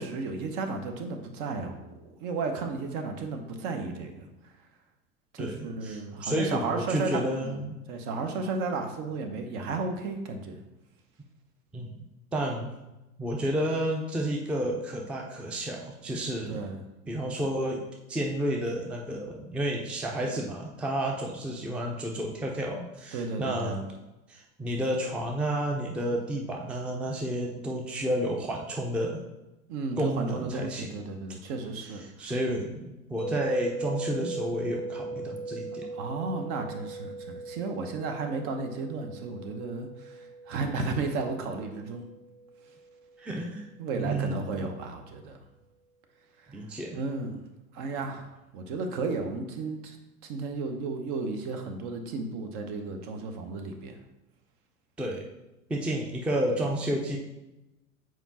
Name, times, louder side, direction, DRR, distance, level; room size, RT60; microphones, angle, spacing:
voice 1, 0.0-4.5 5.3-7.6 7.9-10.6 16.5-16.8 23.1-23.8 29.7-32.3 35.9-42.1 43.8-45.4 46.4-46.6 46.9-48.2 48.5-50.0 50.2-54.0, right 3 dB, 45° right, 5 dB, 1.0 m, -34 dB
voice 2, 5.4-7.8 11.7-12.0 12.3-12.7 13.2-16.6 17.1-17.8 18.1-23.7 24.3-29.2 30.0-30.9 31.8-35.9 43.2-43.7 44.0-44.5 46.5-47.0 55.0-55.2 55.7-57.2, right 1 dB, 5° right, 0 dB, 0.5 m, -31 dB
sound 1, 33.2-43.3, right 3 dB, 15° left, 1.2 m, -39 dB
7.1 x 4.5 x 2.9 m, 0.99 s
figure-of-eight pair, 85°, 44 cm